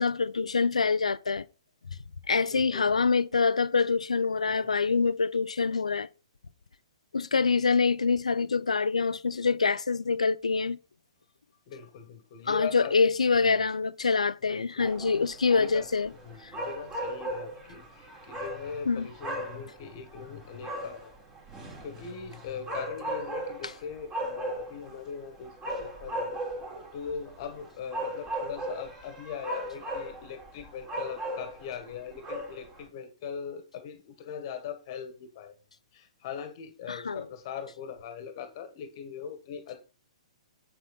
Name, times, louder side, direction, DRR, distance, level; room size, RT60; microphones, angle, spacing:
voice 1, 0.0-1.4 2.3-6.1 7.1-10.8 12.5-16.1 16.4-16.5 18.9-19.1 36.9-37.2, left 4 dB, 75° left, 0.6 m, -25 dB
voice 2, 2.5-2.9 4.4-4.7 11.7-13.2 13.4-13.6 14.5-14.9 15.6-21.1 21.8-26.4 26.9-35.6 35.9-39.8, left 7 dB, 40° left, 1.6 m, -41 dB
sound 1, 14.8-32.9, right 1 dB, 20° right, 4.2 m, -38 dB
8.3 x 7.8 x 4.1 m
figure-of-eight pair, 115°, 4 cm